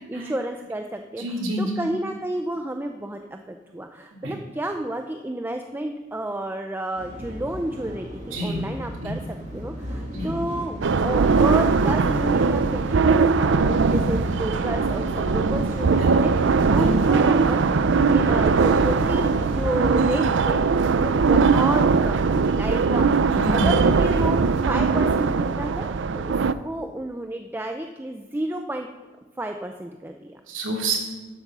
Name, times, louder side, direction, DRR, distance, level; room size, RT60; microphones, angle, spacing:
voice 1, 0.1-1.2 1.6-17.8 18.1-20.6 20.9-28.9 29.4-30.4, right 1 dB, 10° right, 5 dB, 0.5 m, -31 dB
voice 2, 1.2-1.8 4.2-4.3 8.3-8.6 9.0-9.1 10.1-10.3 16.0-16.1 16.7-16.9 23.3-23.8 30.5-31.0, right 1 dB, 85° right, -2 dB, 2.8 m, -28 dB
sound 1, 7.0-20.3, equal, 40° right, 2.2 m, -34 dB
sound 2, 10.8-26.5, right 4 dB, 65° right, 0.5 m, -20 dB
13.0 x 8.0 x 6.1 m, 1.3 s
head